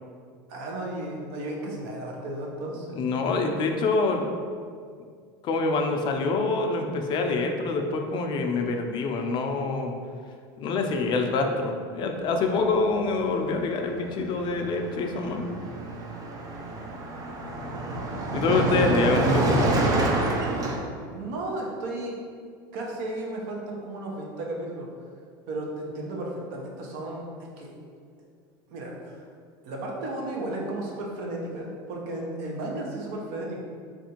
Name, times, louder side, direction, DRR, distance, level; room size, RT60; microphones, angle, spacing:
voice 1, 0.5-2.9 17.7-18.1 19.1-19.2 21.1-22.1 22.7-24.9 25.5-27.3 27.6-27.7 28.7-29.2 29.6-33.6, right 1 dB, 70° right, -2 dB, 0.7 m, -34 dB
voice 2, 2.9-4.3 5.4-9.9 10.6-15.5 18.3-19.7, left 3 dB, 45° left, 3 dB, 0.4 m, -26 dB
Car passing by, 13.3-13.5 13.8-20.8, right 2 dB, 35° right, 0.5 m, -27 dB
3.4 x 2.5 x 2.8 m, 2.1 s
supercardioid pair, 105°, 11 cm